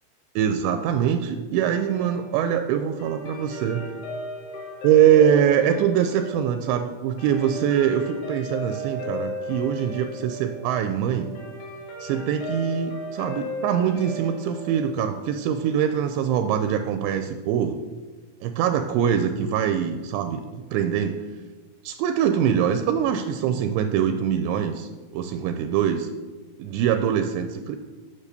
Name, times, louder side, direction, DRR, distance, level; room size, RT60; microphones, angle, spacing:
voice 1, 0.4-3.9 4.8-11.3 12.0-17.8 18.4-21.2 21.8-26.1 26.6-27.8, right 9 dB, 85° right, 8 dB, 2.7 m, -23 dB
Guitar, 1.7-16.3, equal, 90° left, 4.8 m, -36 dB
9.8 x 6.5 x 6.7 m, 1.3 s
omnidirectional pair, 5.5 m